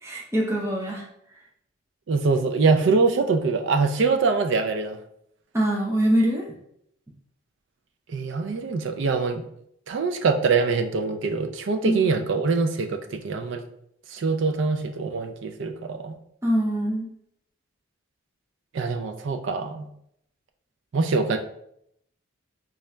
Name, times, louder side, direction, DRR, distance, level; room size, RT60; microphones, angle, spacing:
voice 1, 0.0-1.0 5.5-6.5 11.8-12.1 16.4-17.1, equal, 15° right, -2 dB, 0.6 m, -23 dB
voice 2, 2.1-5.0 8.1-9.5 9.9-13.6 14.1-16.2 18.7-19.9 20.9-21.4, right 4 dB, 60° right, 5 dB, 0.4 m, -24 dB
4.0 x 2.4 x 3.2 m, 0.72 s
head